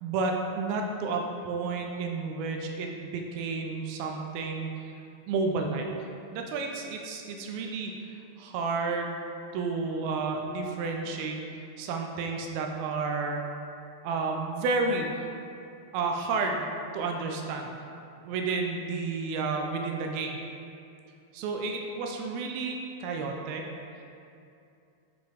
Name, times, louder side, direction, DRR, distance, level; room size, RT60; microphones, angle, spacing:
voice 1, 0.0-4.9 5.3-5.9 6.3-7.9 8.4-9.2 9.5-11.4 11.8-13.4 14.0-15.1 15.9-16.6 16.9-17.8 18.2-20.4 21.3-23.6, right 4 dB, 80° right, 2 dB, 2.3 m, -31 dB
7.8 x 5.5 x 3.4 m, 2.7 s
omnidirectional pair, 4.5 m